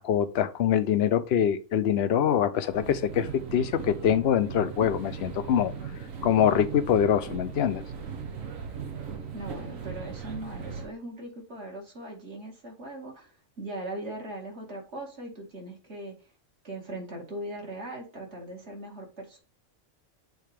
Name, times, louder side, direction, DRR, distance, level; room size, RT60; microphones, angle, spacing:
voice 1, 0.0-5.7 6.2-7.8, left 9 dB, 60° left, 0.8 m, -24 dB
sound 1, 2.7-10.9, right 6 dB, 75° right, 1.5 m, -38 dB
voice 2, 9.3-13.3 13.6-16.1 16.6-19.4, right 1 dB, 55° right, 2.3 m, -39 dB
8.0 x 3.7 x 3.4 m
omnidirectional pair, 1.4 m